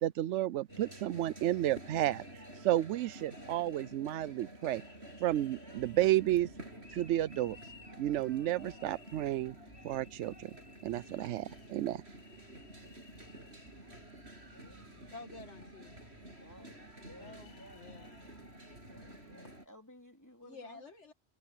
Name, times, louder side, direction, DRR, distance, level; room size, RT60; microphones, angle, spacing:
voice 1, 0.0-4.8 5.2-6.5 6.9-7.7 8.0-9.5 9.8-10.5 10.8-12.0, right 13 dB, 80° right, 0.9 m, -32 dB
sound 1, 0.7-19.7, right 1 dB, 65° right, 8.5 m, -51 dB
sound 2, 5.8-19.3, equal, 15° right, 5.8 m, -61 dB
voice 2, 14.5-15.2 16.4-18.0 18.9-20.8, left 1 dB, 15° left, 3.2 m, -57 dB
voice 3, 15.1-16.0 17.2-18.3 19.4-19.5 20.4-21.1, left 3 dB, 75° left, 2.3 m, -51 dB
omnidirectional pair, 1.2 m